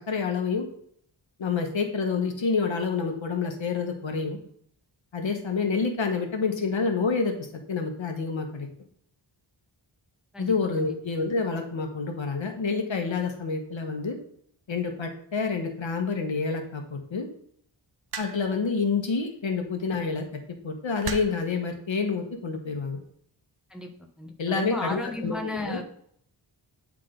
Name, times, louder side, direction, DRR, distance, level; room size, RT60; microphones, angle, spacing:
voice 1, 0.1-0.6 1.4-4.4 5.1-7.3 7.7-8.7 10.4-14.2 14.7-17.3 18.2-20.2 20.6-23.0 24.4-25.8, left 4 dB, 65° left, 3 dB, 1.3 m, -28 dB
voice 2, 10.3-10.9 23.7-23.9 24.2-25.8, left 2 dB, ahead, 2 dB, 0.8 m, -34 dB
sound 1, 18.1-18.6 19.9-20.1 21.0-21.5 22.5-22.8, right 5 dB, 50° right, 0.7 m, -36 dB
9.7 x 3.7 x 3.8 m, 0.66 s
wide cardioid pair, 115°, 48 cm